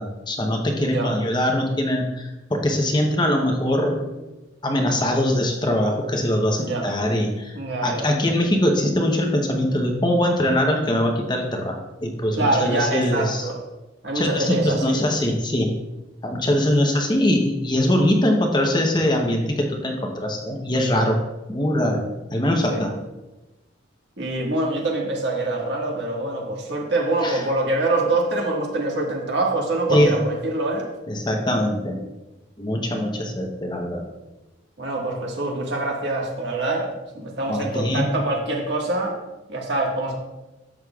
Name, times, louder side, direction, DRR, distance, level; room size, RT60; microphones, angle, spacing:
voice 1, 0.0-4.1 4.6-7.5 7.8-13.5 14.1-15.7 16.2-21.2 21.5-22.0 22.3-22.9 27.2-27.4 29.9-30.2 31.1-32.0 32.6-34.0 37.5-38.1, left 1 dB, 20° left, 2 dB, 0.8 m, -22 dB
voice 2, 0.8-1.1 6.6-6.9 7.5-8.1 12.4-13.6 14.0-15.0 22.7-22.8 24.2-30.9 34.8-39.2 39.5-40.2, right 2 dB, 60° right, -1 dB, 1.7 m, -25 dB
11.0 x 7.4 x 2.4 m, 1.1 s
head